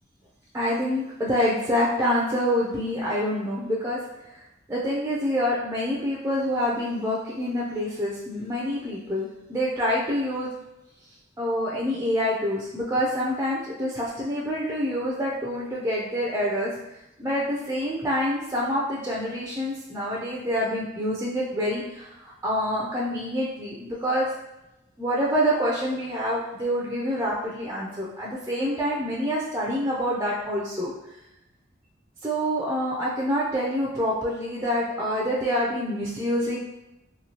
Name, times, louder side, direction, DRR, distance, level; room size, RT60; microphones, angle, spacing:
voice 1, 0.5-4.0 4.7-10.5 11.4-16.7 17.2-24.3 25.0-30.9 32.2-36.6, equal, 15° right, -5 dB, 0.4 m, -26 dB
3.0 x 2.7 x 2.7 m, 0.91 s
head